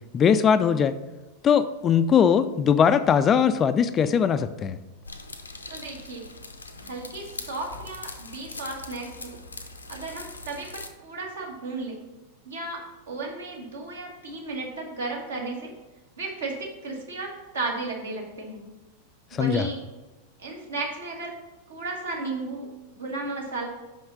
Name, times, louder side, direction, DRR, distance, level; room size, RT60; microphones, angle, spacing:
voice 1, 0.1-0.9 1.4-4.8 19.3-19.7, left 7 dB, 25° left, 12 dB, 0.3 m, -20 dB
sound 1, 5.0-10.9, left 3 dB, 80° left, 0.6 m, -41 dB
voice 2, 5.7-6.2 6.8-9.4 9.9-12.0 12.4-15.7 16.2-18.6 19.3-19.8 20.4-21.3 21.7-22.7 23.0-23.7, right 3 dB, 65° right, -1 dB, 1.6 m, -34 dB
5.6 x 5.5 x 5.3 m, 1.1 s
figure-of-eight pair, 90°, 0 cm